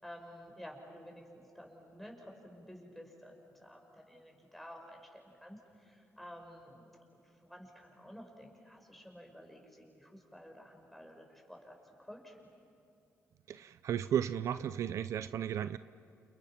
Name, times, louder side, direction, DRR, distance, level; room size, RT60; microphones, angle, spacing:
voice 1, 0.0-12.5, equal, 5° left, 1 dB, 5.8 m, -52 dB
voice 2, 13.5-15.8, right 9 dB, 70° right, 13 dB, 0.6 m, -34 dB
30.0 x 29.0 x 5.9 m, 2.5 s
cardioid pair, 90°, 5 cm